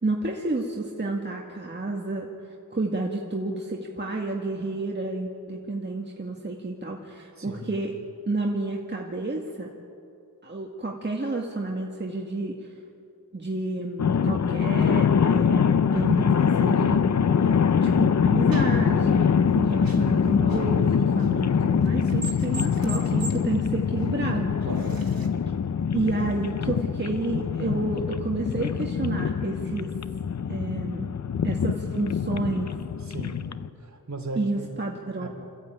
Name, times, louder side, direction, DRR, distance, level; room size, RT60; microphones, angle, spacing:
voice 1, 0.0-2.3 2.7-7.9 8.3-9.7 10.4-12.7 13.3-17.1 17.8-24.6 25.9-29.9 30.5-31.1 31.4-32.7 34.4-35.3, right 2 dB, 30° right, -1 dB, 1.8 m, -30 dB
sound 1, 14.0-33.7, left 7 dB, 50° left, 0.6 m, -24 dB
sound 2, 14.8-25.3, right 2 dB, 75° right, 2.3 m, -44 dB
voice 2, 17.4-17.7 24.6-25.1 33.0-33.5 33.8-34.7 35.2-35.3, right 2 dB, 50° right, 2 dB, 3.5 m, -36 dB
27.0 x 14.0 x 9.0 m, 2.6 s
wide cardioid pair, 95°, 35 cm